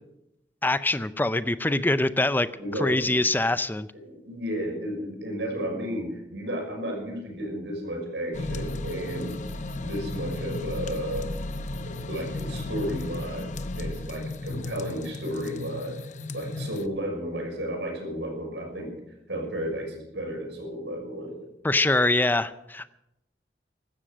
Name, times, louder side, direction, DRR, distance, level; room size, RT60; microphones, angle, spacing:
voice 1, 0.6-2.5 2.8-3.9 21.6-22.9, left 2 dB, 10° left, 14 dB, 0.5 m, -24 dB
voice 2, 2.6-2.9 4.0-9.4 9.7-11.3 11.8-13.5 13.8-16.0 16.3-18.9 19.3-21.5, equal, 90° right, 1 dB, 6.0 m, -33 dB
sound 1, 8.3-16.9, left 2 dB, 45° left, 0.8 m, -34 dB
15.5 x 12.5 x 6.2 m, 0.87 s
head